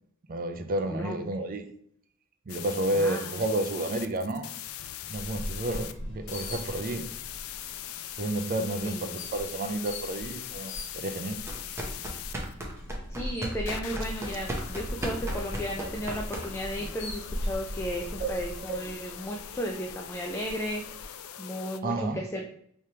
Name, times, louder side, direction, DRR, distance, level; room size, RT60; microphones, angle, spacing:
voice 1, 0.3-1.6 2.5-4.6 5.1-7.1 8.2-11.4 18.2-18.3 18.7-19.1 21.8-22.5, right 1 dB, 45° right, 6 dB, 0.5 m, -31 dB
voice 2, 0.9-1.2 2.9-3.3 8.8-9.1 13.1-22.5, equal, 15° left, 1 dB, 0.4 m, -35 dB
sound 1, 2.5-5.9 6.3-12.5 13.7-21.8, left 11 dB, 85° left, 0.4 m, -41 dB
sound 2, 5.1-21.0, equal, 60° left, 0.8 m, -40 dB
sound 3, 11.4-16.8, right 1 dB, 15° right, 0.8 m, -36 dB
4.6 x 3.3 x 2.9 m, 0.66 s
head